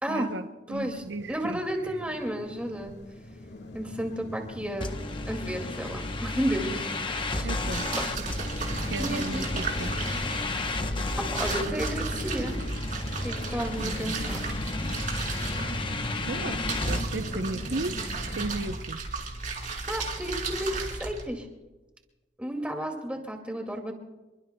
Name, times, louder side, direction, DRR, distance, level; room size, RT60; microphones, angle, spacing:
voice 1, 0.1-1.6 7.4-7.9 8.9-9.9 13.8-14.1 16.3-18.0 18.4-19.0, right 2 dB, 85° right, 9 dB, 0.7 m, -35 dB
sound 1, 0.7-18.8, left 1 dB, 75° left, 1.7 m, -39 dB
voice 2, 0.7-2.9 3.7-5.0 5.3-6.8 7.1-7.5 9.0-9.5 11.2-12.6 13.2-14.6 19.9-21.5 22.4-23.9, right 1 dB, 5° right, 3 dB, 2.2 m, -32 dB
sound 2, 4.8-17.0, left 2 dB, 30° left, 0.8 m, -33 dB
sound 3, 7.7-21.2, right 4 dB, 50° right, 3.6 m, -35 dB
27.5 x 23.0 x 2.3 m, 1.1 s
head